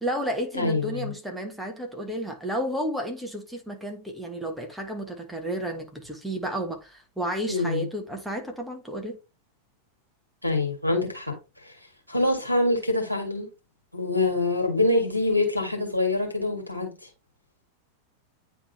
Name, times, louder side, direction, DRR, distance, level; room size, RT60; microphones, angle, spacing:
voice 1, 0.0-9.2, equal, 5° right, 1.4 m, -32 dB
voice 2, 0.5-1.1 7.5-7.9 10.4-11.3 11.6-11.7 12.1-13.5 13.9-16.9, left 2 dB, 90° left, 1.9 m, -25 dB
9.7 x 3.5 x 2.8 m
figure-of-eight pair, 90°, 0 cm